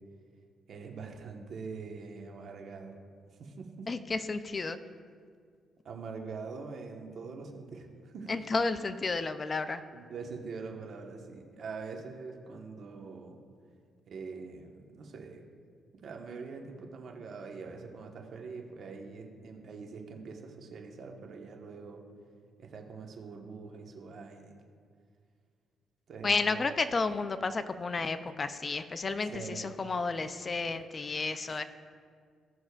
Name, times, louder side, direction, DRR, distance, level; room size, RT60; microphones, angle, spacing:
voice 1, 0.7-3.0 3.4-3.9 5.8-8.3 9.9-13.4 14.1-15.4 15.9-22.0 22.6-24.6 26.1-26.8 29.3-29.7, right 4 dB, 60° right, 2 dB, 1.3 m, -44 dB
voice 2, 3.9-4.8 8.3-9.8 26.2-31.6, left 3 dB, 35° left, 11 dB, 0.5 m, -32 dB
17.0 x 6.2 x 2.4 m, 2.1 s
cardioid pair, 75°, 0 cm